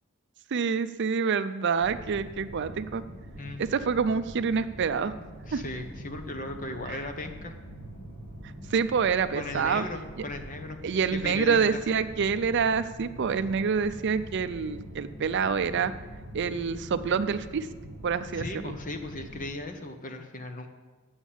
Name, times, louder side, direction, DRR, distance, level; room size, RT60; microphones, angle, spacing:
voice 1, 0.5-3.0 3.6-5.1 5.5-5.6 6.9-7.0 8.7-9.8 10.8-15.9 16.3-17.7 18.0-18.7, right 6 dB, 55° right, 12 dB, 0.4 m, -27 dB
sound 1, 1.8-19.5, equal, 75° left, 2.9 m, -44 dB
voice 2, 5.5-7.5 9.3-10.8 11.2-11.8 18.3-20.7, left 2 dB, 40° left, 6 dB, 1.0 m, -37 dB
8.8 x 7.2 x 7.2 m, 1.3 s
head